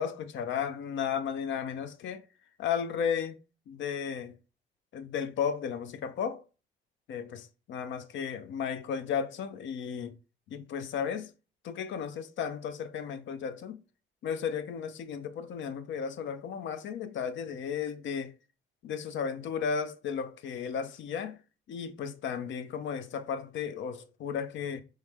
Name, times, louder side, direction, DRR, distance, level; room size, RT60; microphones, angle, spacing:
voice 1, 0.0-2.2 2.6-3.4 3.7-4.3 4.9-6.4 7.1-10.1 10.5-11.3 11.6-13.8 14.2-18.3 18.8-21.4 21.7-24.8, left 7 dB, 70° left, 0.6 m, -34 dB
3.2 x 3.2 x 3.5 m
cardioid pair, 90°, 20 cm